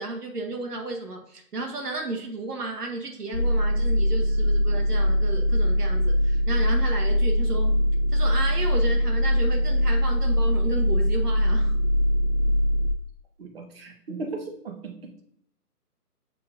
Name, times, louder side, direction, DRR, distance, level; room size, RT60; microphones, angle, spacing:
voice 1, 0.0-7.8 8.1-11.7, right 2 dB, 75° right, 2 dB, 1.1 m, -33 dB
sound 1, 3.3-12.9, equal, 50° left, 0.6 m, -22 dB
voice 2, 13.4-15.1, right 3 dB, 40° right, 2 dB, 1.0 m, -36 dB
6.9 x 2.9 x 2.5 m, 0.68 s
figure-of-eight pair, 140°, 47 cm